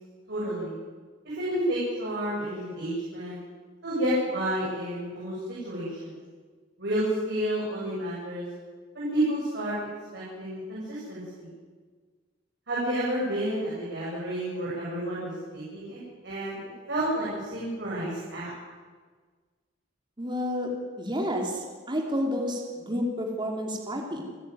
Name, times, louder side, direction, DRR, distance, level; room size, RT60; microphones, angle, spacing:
voice 1, 0.3-0.8 1.2-3.4 3.8-5.3 5.6-6.1 6.8-8.5 8.9-9.7 10.1-11.5 12.7-16.6 16.9-18.5, right 1 dB, 60° right, -7 dB, 7.8 m, -30 dB
voice 2, 20.2-20.7 21.0-24.2, equal, 25° right, 1 dB, 3.0 m, -30 dB
29.5 x 11.0 x 9.2 m, 1.5 s
head